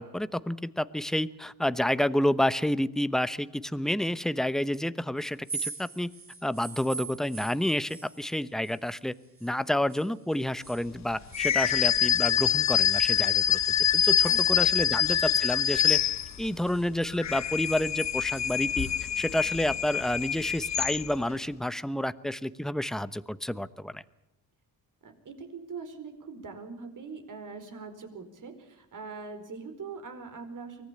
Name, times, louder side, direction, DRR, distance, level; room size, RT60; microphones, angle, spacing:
voice 1, 0.0-6.1 6.4-9.1 9.4-16.0 16.4-18.9 19.2-24.0, left 1 dB, ahead, 15 dB, 0.9 m, -29 dB
sound 1, 5.3-9.6 9.9-12.4 12.9-15.2 15.5-19.0, right 4 dB, 35° right, 4.6 m, -44 dB
sound 2, 11.3-16.6 17.1-21.3, left 10 dB, 45° left, 0.8 m, -25 dB
voice 2, 14.2-14.7 25.0-30.8, right 4 dB, 50° right, 7 dB, 4.7 m, -42 dB
24.0 x 18.5 x 8.7 m, 0.88 s
cardioid pair, 85°, 39 cm